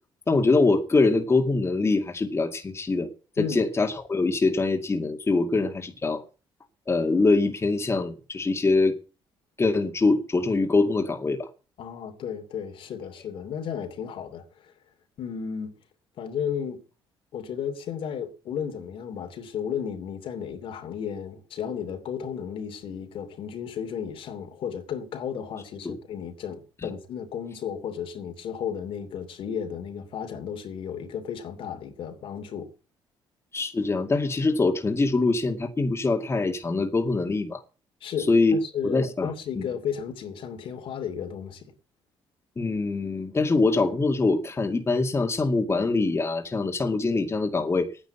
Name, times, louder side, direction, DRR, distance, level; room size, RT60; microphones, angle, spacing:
voice 1, 0.3-3.1 3.4-6.2 6.9-9.0 9.6-11.5 25.8-26.0 33.5-37.6 38.3-38.6 38.8-39.7 42.6-47.9, left 3 dB, 25° left, 2.3 m, -24 dB
voice 2, 11.8-14.7 15.2-15.7 16.2-16.8 17.3-32.7 38.0-41.7, left 8 dB, 70° left, 2.9 m, -34 dB
10.5 x 10.0 x 8.3 m
cardioid pair, 80°, 10 cm